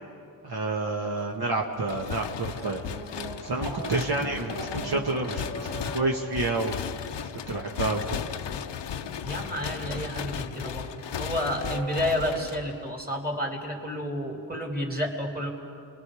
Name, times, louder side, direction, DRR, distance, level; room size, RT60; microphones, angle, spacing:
voice 1, 0.4-2.8 3.4-6.8 7.5-8.0, right 2 dB, 65° right, 0 dB, 1.4 m, -29 dB
sound 1, 1.9-13.1, left 8 dB, 85° left, 0.7 m, -36 dB
sound 2, 2.5-12.5, right 3 dB, 90° right, 1.4 m, -42 dB
voice 2, 9.2-15.5, equal, 20° right, 0 dB, 3.1 m, -30 dB
30.0 x 21.5 x 4.9 m, 2.6 s
wide cardioid pair, 105°, 41 cm